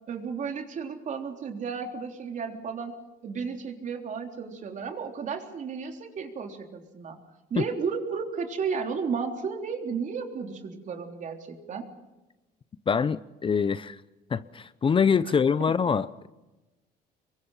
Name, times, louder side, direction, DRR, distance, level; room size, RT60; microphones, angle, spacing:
voice 1, 0.1-3.0 3.2-7.2 7.5-11.9, right 5 dB, 45° right, 3 dB, 3.7 m, -33 dB
voice 2, 12.9-14.0 14.3-16.3, left 6 dB, 30° left, 15 dB, 0.7 m, -24 dB
27.0 x 23.0 x 5.7 m, 1.0 s
cardioid pair, 110°, 17 cm